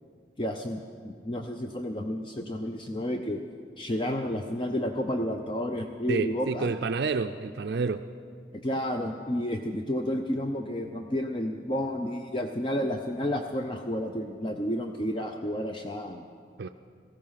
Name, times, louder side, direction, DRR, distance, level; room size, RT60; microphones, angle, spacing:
voice 1, 0.4-3.4 3.8-6.7 8.5-16.2, equal, 25° left, 4 dB, 0.5 m, -31 dB
voice 2, 6.1-8.1 16.6-16.7, right 4 dB, 60° right, 9 dB, 0.4 m, -29 dB
17.0 x 14.5 x 5.7 m, 2.1 s
head